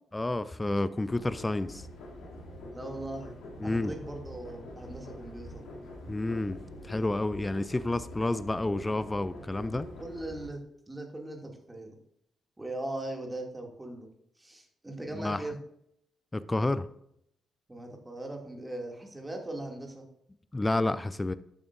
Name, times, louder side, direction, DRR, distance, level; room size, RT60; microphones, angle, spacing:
voice 1, 0.1-1.9 3.6-3.9 6.1-6.6 6.8-9.9 15.1-15.4 16.3-16.9 20.5-21.3, left 2 dB, 15° left, 0.5 m, -30 dB
sound 1, 1.0-10.5, left 1 dB, 60° left, 2.7 m, -45 dB
voice 2, 2.7-3.4 3.6-5.6 10.0-10.6 10.9-12.0 12.6-14.1 14.4-15.6 17.7-20.0, right 1 dB, 15° right, 2.5 m, -39 dB
13.0 x 8.7 x 2.6 m
figure-of-eight pair, 40°, 0 cm